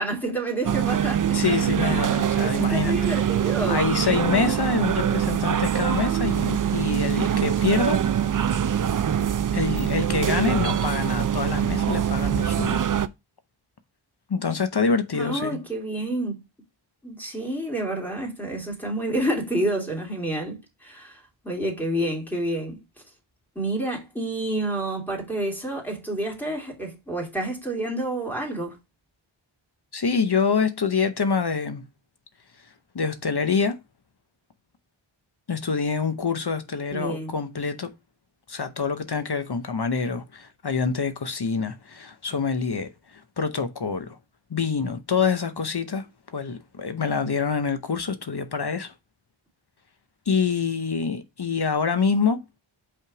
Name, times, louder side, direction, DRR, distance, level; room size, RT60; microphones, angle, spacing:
voice 1, 0.0-1.4 1.8-3.9 15.1-16.3 17.0-22.8 23.6-28.8 36.9-37.3, right 1 dB, 5° left, 2.6 m, -29 dB
sound 1, 0.6-13.1, right 9 dB, 45° right, 0.4 m, -24 dB
voice 2, 1.3-3.0 3.7-8.0 9.5-12.8 14.3-15.6 29.9-31.8 32.9-33.8 35.5-37.9 38.5-44.2 44.5-46.1 46.3-48.9 50.3-52.4, left 5 dB, 50° left, 0.8 m, -26 dB
5.5 x 3.6 x 4.7 m
wide cardioid pair, 55°, 50 cm